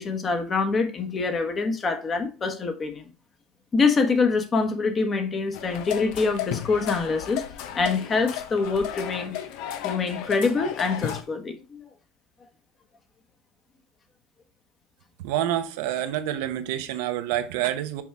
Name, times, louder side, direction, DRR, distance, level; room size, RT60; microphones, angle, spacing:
voice 1, 0.0-3.0 3.7-7.4 7.7-9.3 9.8-11.8, left 4 dB, 30° left, 1.2 m, -25 dB
sound 1, 5.5-11.2, left 11 dB, 75° left, 0.8 m, -33 dB
voice 2, 15.2-18.0, right 12 dB, 90° right, 0.8 m, -27 dB
6.1 x 4.6 x 3.4 m
cardioid pair, 135°, 0 cm